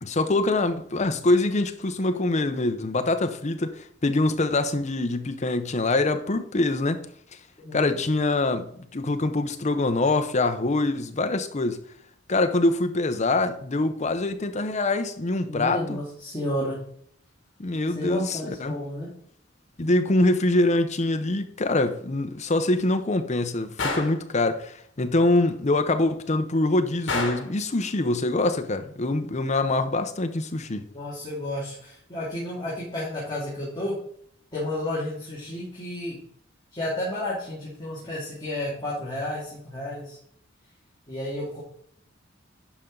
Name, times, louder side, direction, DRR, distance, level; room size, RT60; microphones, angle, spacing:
voice 1, 0.0-7.0 7.7-11.8 12.3-16.0 17.6-18.8 19.8-30.8, left 2 dB, 35° left, 0.7 m, -24 dB
voice 2, 15.5-16.8 17.9-19.1 30.9-34.0 34.5-36.2 36.7-40.2 41.1-41.6, left 1 dB, 20° left, 2.5 m, -31 dB
Gunshot gunfire, 23.8-24.2 27.1-27.6, left 3 dB, 75° left, 1.9 m, -28 dB
10.5 x 5.4 x 3.8 m
head